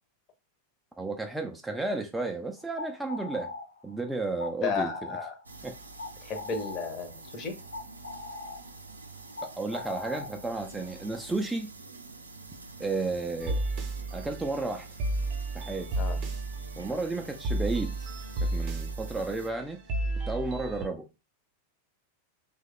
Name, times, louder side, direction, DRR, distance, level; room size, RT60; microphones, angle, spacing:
voice 1, 1.0-3.5 3.8-4.9 5.6-5.7 9.4-11.7 12.8-13.6 14.1-14.9 15.5-15.9 16.8-18.1 18.4-19.8 20.3-21.0, right 3 dB, 5° right, 0.3 m, -32 dB
sound 1, 2.6-11.4, left 3 dB, 70° left, 0.4 m, -42 dB
voice 2, 4.6-5.3 6.2-7.5 16.0-16.2 19.2-19.3, left 5 dB, 30° left, 0.7 m, -33 dB
sound 2, 5.4-19.5, right 3 dB, 80° right, 0.4 m, -47 dB
sound 3, 13.4-20.9, right 2 dB, 35° right, 0.7 m, -33 dB
2.9 x 2.2 x 3.6 m
figure-of-eight pair, 90°, 0 cm